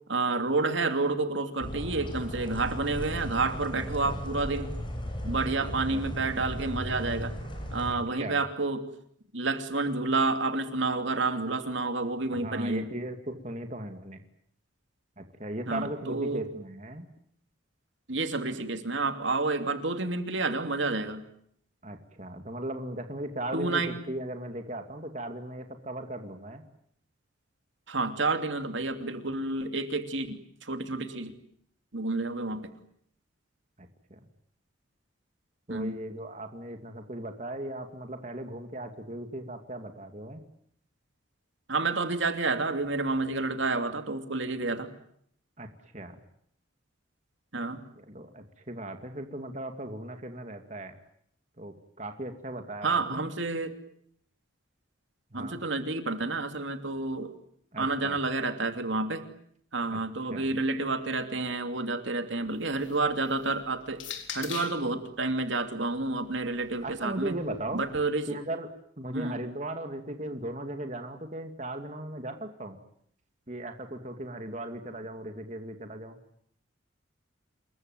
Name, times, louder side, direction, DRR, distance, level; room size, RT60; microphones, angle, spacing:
voice 1, 0.1-4.7 5.2-7.3 7.7-8.8 9.3-12.8 15.7-16.4 18.1-21.2 23.5-23.9 27.9-31.3 31.9-32.7 35.7-36.0 41.7-44.9 47.5-47.8 52.8-53.8 55.3-57.3 57.8-59.2 59.7-64.0 64.3-67.3 67.7-68.3 69.1-69.4, right 3 dB, 70° right, 7 dB, 2.8 m, -29 dB
sound 1, 1.6-7.9, equal, 25° left, 7.4 m, -36 dB
voice 2, 3.8-4.2 5.6-6.3 7.9-8.4 12.3-14.2 15.2-17.1 21.8-26.6 33.8-34.2 35.7-40.4 45.6-45.7 45.9-46.2 48.0-50.9 51.6-53.2 55.3-55.6 57.7-58.2 59.9-60.0 60.3-60.5 66.8-67.8 68.3-72.8 73.5-76.2, right 1 dB, 35° right, 6 dB, 2.5 m, -38 dB
sound 2, 62.5-64.9 65.9-68.0, left 8 dB, 70° left, 4.0 m, -44 dB
28.0 x 22.5 x 9.2 m, 0.68 s
head